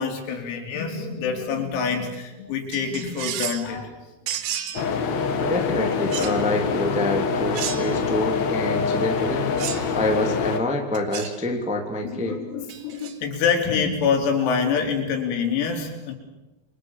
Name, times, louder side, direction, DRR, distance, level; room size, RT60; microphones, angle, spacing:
voice 1, 0.0-3.9 12.0-16.1, left 6 dB, 90° left, 3 dB, 6.3 m, -26 dB
sound 1, 2.7-3.7 4.3-4.8 6.1-6.4 7.5-8.1 9.6-9.9 10.9-11.4 12.7-13.2, right 10 dB, 75° right, 3.9 m, -32 dB
sound 2, 4.7-10.6, left 5 dB, 70° left, 1.7 m, -25 dB
voice 2, 5.4-9.5 9.9-12.4, left 1 dB, 5° right, 2 dB, 1.1 m, -26 dB
29.0 x 23.5 x 7.4 m, 1.0 s
omnidirectional pair, 6.0 m